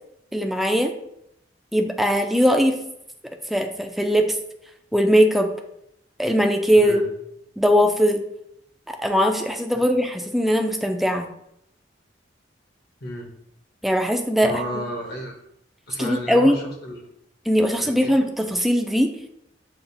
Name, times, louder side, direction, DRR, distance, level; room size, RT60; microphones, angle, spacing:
voice 1, 0.3-0.9 1.7-2.8 3.5-4.3 4.9-5.5 6.2-7.0 7.6-8.2 8.9-11.3 13.8-14.5 16.0-16.5 17.5-19.1, equal, ahead, 4 dB, 0.3 m, -20 dB
voice 2, 6.8-7.1 9.7-9.9 13.0-13.3 14.4-15.4 15.9-17.0 17.8-18.1, equal, 60° left, 2 dB, 0.9 m, -32 dB
6.9 x 2.4 x 2.6 m, 0.77 s
head